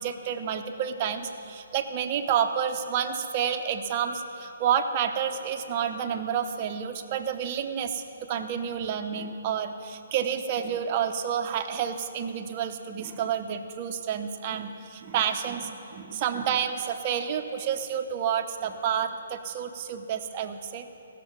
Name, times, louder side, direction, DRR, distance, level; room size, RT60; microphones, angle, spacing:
voice 1, 0.0-8.0 8.3-20.9, right 8 dB, 35° right, 5 dB, 0.9 m, -29 dB
16.5 x 6.7 x 7.2 m, 2.8 s
hypercardioid pair, 140°, 0 cm